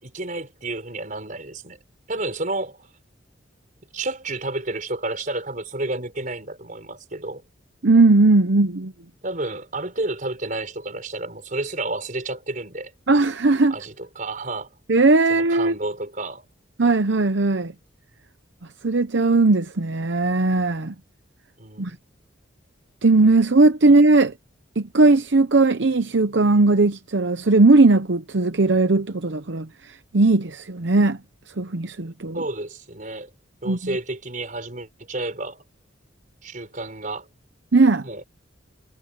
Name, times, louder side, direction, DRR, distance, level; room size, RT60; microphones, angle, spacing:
voice 1, 0.0-1.8 2.1-2.9 3.9-7.4 9.2-12.9 13.7-14.7 15.3-16.4 21.6-22.0 32.3-33.3 33.6-35.6 36.4-37.3 38.0-38.2, right 2 dB, 40° right, 4.8 m, -31 dB
voice 2, 7.8-8.9 13.1-13.7 14.9-15.7 16.8-17.7 18.8-20.9 21.8-22.0 23.0-24.3 24.8-31.2 31.6-32.4 33.7-33.8 37.7-38.0, right 3 dB, 65° right, 0.8 m, -18 dB
head